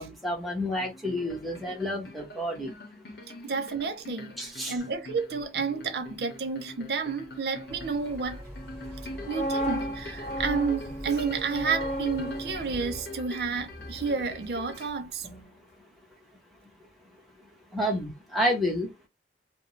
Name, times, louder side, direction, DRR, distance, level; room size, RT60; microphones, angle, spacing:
voice 1, 0.0-2.7 4.4-4.7 17.7-18.9, equal, ahead, 0.8 m, -29 dB
sound 1, 0.7-14.9, left 2 dB, 70° left, 0.8 m, -45 dB
voice 2, 3.4-8.4 9.3-15.3, right 5 dB, 65° right, 0.5 m, -31 dB
sound 2, 7.7-13.0, equal, 15° right, 1.2 m, -42 dB
sound 3, 9.0-14.9 15.2-15.5, equal, 35° left, 0.5 m, -35 dB
2.5 x 2.0 x 3.0 m
head